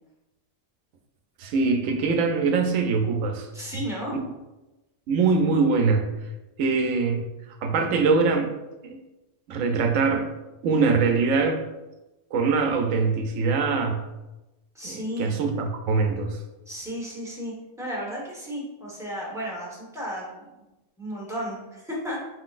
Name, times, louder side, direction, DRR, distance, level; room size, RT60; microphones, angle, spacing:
voice 1, 1.4-3.5 5.1-6.1 6.6-7.2 7.6-8.5 8.8-9.0 9.5-10.3 10.6-11.6 12.3-14.0 14.8-16.4, right 4 dB, 85° right, 5 dB, 1.0 m, -23 dB
voice 2, 3.5-4.2 14.7-15.4 16.7-20.6 21.0-22.2, equal, 5° right, -5 dB, 1.1 m, -34 dB
4.8 x 3.8 x 2.4 m, 1.0 s
omnidirectional pair, 1.3 m